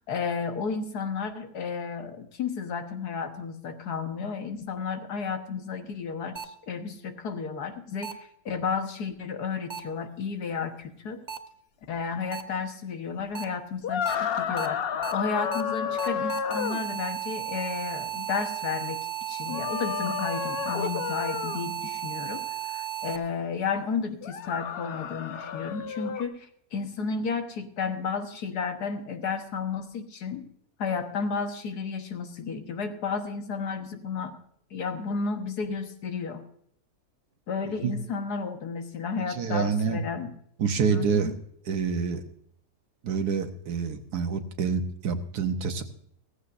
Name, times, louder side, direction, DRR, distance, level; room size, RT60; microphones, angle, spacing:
voice 1, 0.1-11.2 11.9-14.8 15.1-30.5 30.8-34.4 34.7-36.4 37.5-40.3 40.9-41.3, left 5 dB, 90° left, 7 dB, 1.8 m, -32 dB
sound 1, 6.4-6.5 8.0-8.1 9.7-9.8 11.3-11.4 12.3-12.4 13.4-13.5 14.1-14.2 14.6-14.7 15.0-15.1 15.5-15.6 16.0-23.2, right 10 dB, 45° right, 0.6 m, -34 dB
sound 2, 13.8-16.8 19.5-21.6 24.2-26.2, left 7 dB, 55° left, 0.7 m, -31 dB
voice 2, 39.3-40.0 40.6-41.3 41.7-42.2 43.0-45.8, right 6 dB, 90° right, 7 dB, 1.7 m, -27 dB
16.5 x 15.0 x 2.6 m, 0.68 s
omnidirectional pair, 1.7 m